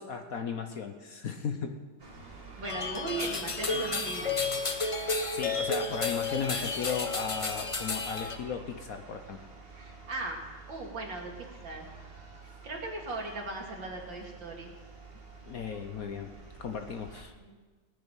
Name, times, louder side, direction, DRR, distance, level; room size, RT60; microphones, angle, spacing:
voice 1, 0.0-1.8 5.3-9.4 15.5-16.3 16.6-17.3, left 6 dB, 55° left, 6 dB, 1.1 m, -36 dB
sound 1, 2.0-17.2, right 4 dB, 30° right, 1.7 m, -49 dB
sound 2, 2.6-8.4, left 3 dB, 30° left, 0.6 m, -32 dB
voice 2, 2.6-4.3 9.8-11.3 11.6-11.9 12.6-14.7 17.4-17.6, right 2 dB, 70° right, 0 dB, 3.1 m, -38 dB
18.5 x 7.0 x 9.0 m, 1.4 s
omnidirectional pair, 2.1 m